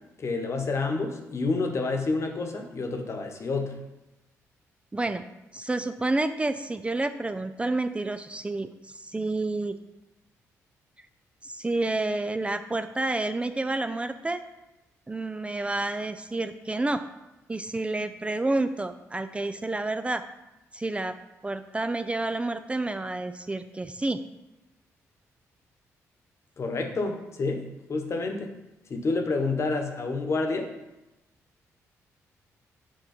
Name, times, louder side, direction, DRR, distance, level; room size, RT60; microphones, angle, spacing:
voice 1, 0.2-3.7 26.6-27.6 27.9-28.5 28.9-30.7, left 3 dB, 50° left, 4 dB, 1.1 m, -28 dB
voice 2, 4.9-5.2 5.5-9.8 11.4-14.4 15.1-17.0 17.5-20.2 20.7-21.2 21.4-24.2, right 2 dB, 20° right, 10 dB, 0.4 m, -29 dB
6.6 x 4.5 x 4.3 m, 0.99 s
supercardioid pair, 65°, 6 cm